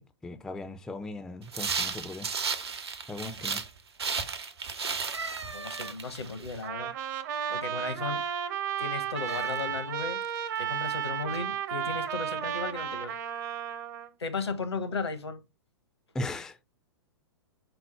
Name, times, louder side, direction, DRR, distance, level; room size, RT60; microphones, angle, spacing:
voice 1, 0.0-2.3 3.1-3.6 16.1-16.6, left 2 dB, 5° left, 0.3 m, -38 dB
sound 1, 1.5-3.7 4.0-6.6, right 5 dB, 70° right, 0.8 m, -34 dB
voice 2, 5.1-6.9 7.5-8.2 8.8-10.2 10.6-13.2 14.2-15.4, left 4 dB, 75° left, 0.9 m, -36 dB
sound 2, 5.1-6.3 9.2-9.6 10.2-10.6 11.3-11.4, right 4 dB, 90° right, 0.4 m, -40 dB
Trumpet, 6.6-14.1, right 9 dB, 40° right, 0.6 m, -33 dB
4.4 x 2.0 x 4.3 m
figure-of-eight pair, 105°, 14 cm